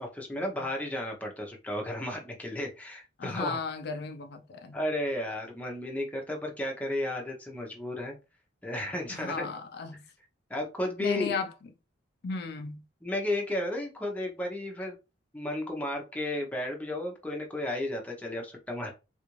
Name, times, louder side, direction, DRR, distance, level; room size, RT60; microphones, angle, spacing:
voice 1, 0.0-3.6 4.7-8.2 8.6-9.5 10.5-11.4 13.0-15.0 15.3-18.9, left 1 dB, 10° left, 0.7 m, -33 dB
voice 2, 3.2-4.8 9.1-10.0 11.0-11.5 12.2-12.8, left 5 dB, 55° left, 0.4 m, -35 dB
3.4 x 2.5 x 3.0 m
head